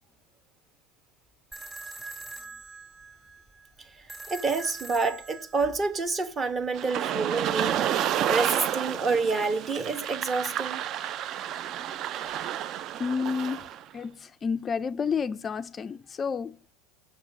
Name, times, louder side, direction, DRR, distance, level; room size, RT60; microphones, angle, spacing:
sound 1, 1.5-6.5, right 2 dB, 10° right, 2.0 m, -43 dB
voice 1, 3.8-10.9, right 4 dB, 25° right, 1.1 m, -28 dB
sound 2, 6.7-13.8, right 10 dB, 45° right, 0.4 m, -30 dB
voice 2, 13.0-13.7 13.9-16.7, left 5 dB, 25° left, 0.3 m, -30 dB
7.2 x 6.5 x 6.1 m
supercardioid pair, 110°, 0 cm